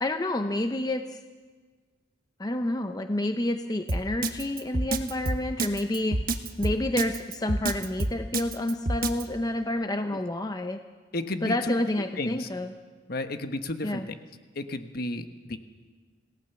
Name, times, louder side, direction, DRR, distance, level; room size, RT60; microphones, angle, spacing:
voice 1, 0.0-1.2 2.4-6.2 6.6-10.8 11.4-12.7 13.8-14.1, left 1 dB, 20° left, 7 dB, 0.7 m, -29 dB
Drum kit, 3.9-9.2, right 2 dB, 50° right, 1.3 m, -27 dB
voice 2, 11.1-11.7 12.2-12.5 13.1-14.0 14.5-15.6, left 2 dB, 50° left, 8 dB, 1.3 m, -32 dB
27.0 x 17.5 x 7.0 m, 1.4 s
head